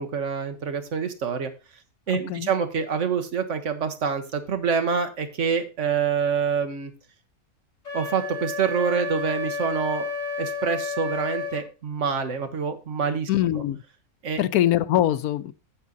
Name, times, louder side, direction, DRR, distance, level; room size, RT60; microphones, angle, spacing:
voice 1, 0.0-1.5 2.1-6.9 7.9-10.0 10.4-13.3 14.2-14.4, right 6 dB, 55° right, 1.4 m, -26 dB
voice 2, 2.1-2.5 13.3-13.8 14.4-15.5, left 13 dB, 90° left, 1.1 m, -23 dB
Wind instrument woodwind instrument, 7.8-11.6, left 4 dB, 50° left, 5.9 m, -31 dB
8.5 x 7.4 x 4.0 m
omnidirectional pair, 1.5 m